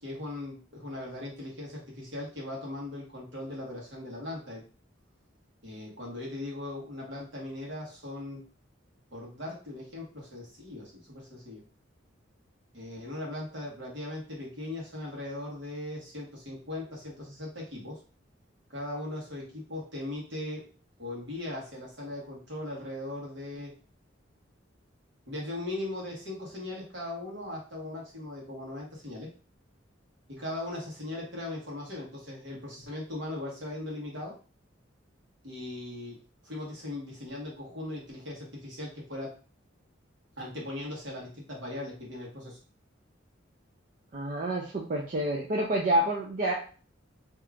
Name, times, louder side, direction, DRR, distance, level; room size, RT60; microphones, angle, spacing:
voice 1, 0.0-4.6 5.6-8.4 9.1-11.6 12.7-18.0 18.7-20.6 21.0-23.7 25.3-29.3 30.3-34.3 35.4-36.2 36.4-39.3 40.4-42.6, left 1 dB, 65° right, -3 dB, 1.3 m, -39 dB
voice 2, 44.1-46.5, right 1 dB, 45° right, -2 dB, 0.5 m, -28 dB
2.8 x 2.4 x 3.5 m, 0.39 s
head